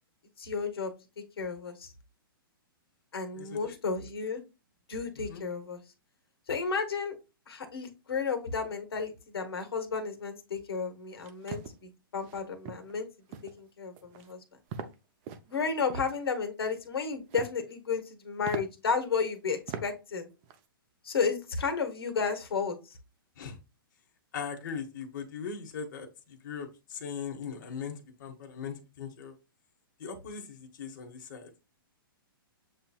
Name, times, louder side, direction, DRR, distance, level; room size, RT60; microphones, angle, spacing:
voice 1, 0.4-0.9 1.4-1.9 3.1-4.4 4.9-5.8 6.5-7.2 7.5-13.1 13.4-14.4 15.5-20.3 21.0-23.0, left 5 dB, 85° left, 6 dB, 1.2 m, -32 dB
voice 2, 3.4-3.8 5.3-5.4 23.4-23.6 24.3-29.3 30.0-31.5, left 6 dB, 55° left, 2 dB, 1.1 m, -40 dB
sound 1, 11.1-11.7 12.2-12.4 12.6-12.9 13.3-13.6 14.0-14.3 14.7-14.9 15.2-16.1 17.0-17.6 18.0-18.1 18.4-18.6 19.3-19.4 19.7-19.9 20.2-20.6, right 7 dB, 30° right, 0.6 m, -40 dB
7.4 x 2.8 x 2.3 m, 0.27 s
hypercardioid pair, 140°, 12 cm